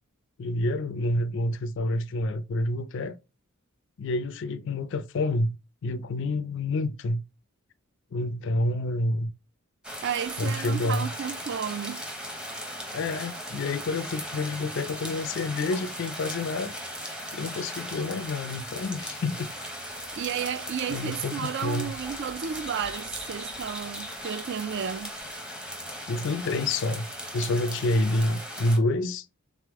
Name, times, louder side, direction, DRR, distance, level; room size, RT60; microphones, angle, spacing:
voice 1, 0.4-3.2 4.0-5.6 5.8-7.2 8.1-9.3 10.4-11.1 12.9-16.8 17.3-19.5 20.9-21.9 26.1-27.1 27.3-29.3, left 2 dB, 55° left, 0.4 m, -28 dB
sound 1, 9.8-28.8, equal, 5° right, 0.7 m, -38 dB
voice 2, 10.0-12.0 20.1-25.2, right 8 dB, 55° right, 0.3 m, -32 dB
3.7 x 3.4 x 3.5 m
head